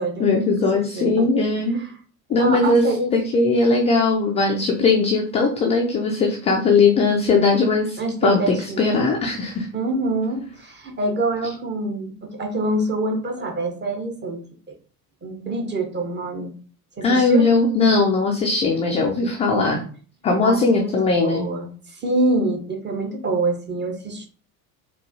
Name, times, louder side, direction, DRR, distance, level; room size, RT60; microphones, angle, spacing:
voice 1, 0.2-1.8 2.3-9.7 17.0-19.8 20.2-21.5, left 3 dB, 15° left, 1 dB, 0.3 m, -19 dB
voice 2, 0.7-1.3 1.7-1.9 2.4-3.1 8.0-8.8 9.7-14.7 15.2-16.5 17.0-17.5 20.4-24.3, right 2 dB, 25° right, 2 dB, 0.9 m, -26 dB
4.5 x 2.2 x 2.7 m, 0.42 s
figure-of-eight pair, 65°, 46 cm